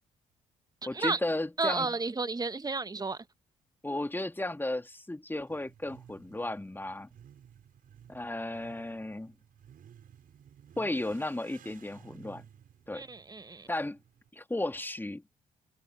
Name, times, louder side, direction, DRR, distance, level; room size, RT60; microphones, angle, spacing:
voice 1, 0.9-1.9 3.8-7.1 8.1-9.3 10.8-12.4 12.9-13.0 13.7-14.0 14.3-15.2, left 1 dB, 10° left, 3.0 m, -34 dB
voice 2, 1.6-3.2 12.9-13.7, right 3 dB, 20° right, 1.5 m, -32 dB
Motorcycle / Accelerating revving vroom, 5.4-14.3, right 9 dB, 55° right, 7.3 m, -56 dB
figure-of-eight pair, 45°, 17 cm